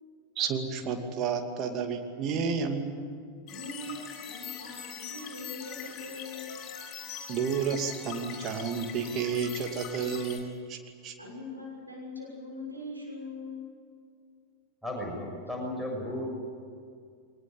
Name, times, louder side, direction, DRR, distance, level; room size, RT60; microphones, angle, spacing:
voice 1, 0.4-3.1 7.3-11.1, right 6 dB, 35° right, 5 dB, 2.6 m, -31 dB
voice 2, 3.4-6.5 11.2-13.6, left 2 dB, 85° right, -2 dB, 6.5 m, -41 dB
sound 1, 3.5-10.4, left 8 dB, 30° left, 7.6 m, -42 dB
voice 3, 14.8-16.3, left 1 dB, ahead, -1 dB, 6.7 m, -34 dB
22.5 x 20.0 x 9.0 m, 2.1 s
figure-of-eight pair, 90°, 0 cm